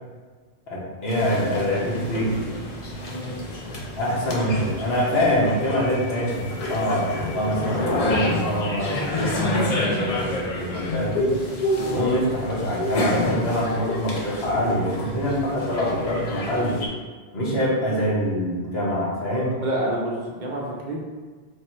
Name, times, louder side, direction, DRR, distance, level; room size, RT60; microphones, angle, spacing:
voice 1, 0.7-2.5 4.0-11.3 11.9-16.8 17.3-19.5, equal, 75° left, -7 dB, 1.4 m, -25 dB
sound 1, 1.1-16.9, left 1 dB, 45° left, 0.6 m, -29 dB
voice 2, 19.6-21.0, right 1 dB, 55° right, -3 dB, 0.7 m, -28 dB
3.3 x 2.6 x 4.3 m, 1.5 s
omnidirectional pair, 1.1 m